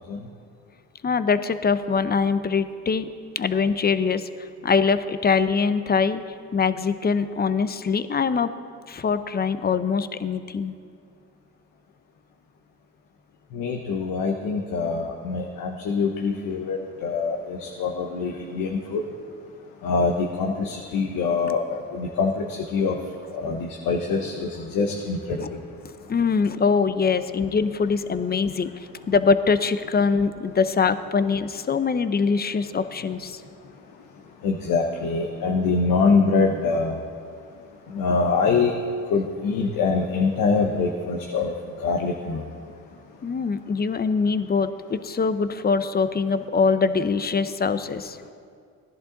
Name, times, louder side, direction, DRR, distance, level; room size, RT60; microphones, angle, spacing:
voice 1, 1.0-3.1 3.3-6.2 6.5-8.5 8.9-10.7 25.4-25.5 26.1-28.7 29.1-33.4 43.2-48.2, left 5 dB, 30° left, 12 dB, 0.7 m, -23 dB
voice 2, 13.5-19.0 19.8-23.0 23.3-25.6 34.4-36.9 37.9-38.7 39.1-41.5 41.8-42.4, left 4 dB, 75° left, 2 dB, 1.0 m, -24 dB
16.0 x 11.0 x 3.9 m, 2.2 s
supercardioid pair, 70°, 34 cm